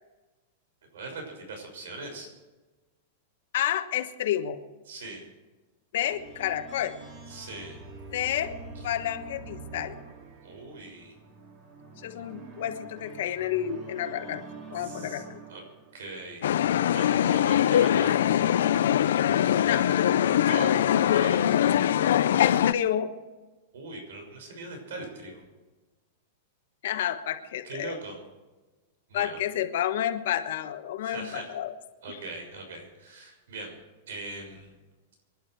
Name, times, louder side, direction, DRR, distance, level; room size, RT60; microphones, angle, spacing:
voice 1, 0.9-2.3 4.9-5.2 7.3-7.7 10.4-11.2 14.8-15.2 15.5-15.6 15.9-16.6 16.9-18.2 20.4-20.8 21.1-21.5 23.7-25.4 27.6-28.2 29.1-29.4 31.0-31.5 32.0-33.7 34.1-34.7, right 3 dB, 80° right, 3 dB, 6.1 m, -40 dB
voice 2, 3.5-4.6 5.9-7.0 8.1-8.6 8.8-10.0 12.0-14.4 14.7-15.4 19.6-19.9 20.5-20.8 22.4-23.1 26.8-28.0 29.1-31.7 32.1-32.2, left 11 dB, 60° left, 8 dB, 1.3 m, -30 dB
sound 1, 6.0-16.1, right 3 dB, 35° right, 2.8 m, -45 dB
sound 2, 16.4-22.7, left 10 dB, 80° left, 0.6 m, -22 dB
25.5 x 11.5 x 4.7 m, 1.2 s
supercardioid pair, 170°, 0 cm